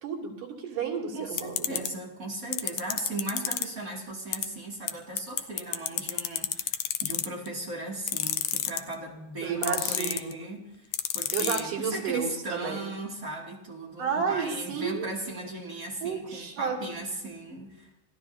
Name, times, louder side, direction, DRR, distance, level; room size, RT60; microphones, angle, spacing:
voice 1, 0.0-1.8 9.4-10.4 11.3-12.8 14.0-15.1 16.0-16.8, right 6 dB, 70° right, -3 dB, 4.5 m, -31 dB
voice 2, 1.1-10.9 11.1-17.9, right 2 dB, 25° right, -2 dB, 2.6 m, -37 dB
sound 1, 1.4-1.9 2.5-3.6 4.3-4.4 4.9-5.0 5.2-7.5 8.1-8.9 9.6-10.3 10.9-11.6, left 12 dB, 75° left, 1.6 m, -27 dB
27.5 x 16.5 x 2.8 m, 0.95 s
omnidirectional pair, 3.8 m